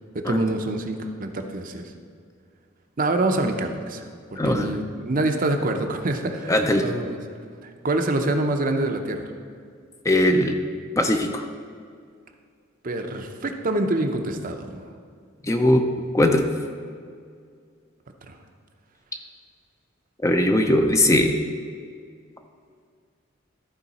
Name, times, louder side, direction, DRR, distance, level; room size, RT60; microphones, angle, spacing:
voice 1, 0.1-1.9 3.0-4.0 4.3-7.2 7.6-9.3 12.8-14.8 16.0-16.1 18.3-18.4, right 2 dB, 45° right, 5 dB, 0.6 m, -26 dB
voice 2, 4.4-4.7 6.5-6.8 10.1-10.6 11.0-11.4 15.4-15.8 16.1-16.5 20.2-21.3, left 1 dB, 15° left, 5 dB, 0.5 m, -19 dB
14.0 x 4.7 x 4.1 m, 2.2 s
head